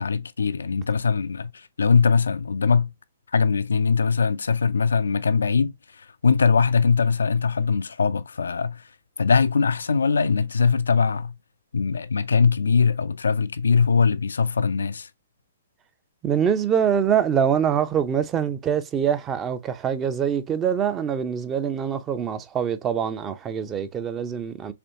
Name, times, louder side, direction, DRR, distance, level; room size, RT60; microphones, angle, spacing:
voice 1, 0.0-2.9 3.3-8.9 9.2-11.3 11.7-15.1, left 5 dB, 70° left, 0.3 m, -21 dB
voice 2, 16.2-24.7, right 8 dB, 20° right, 0.5 m, -24 dB
4.2 x 3.0 x 2.7 m
figure-of-eight pair, 120°, 0 cm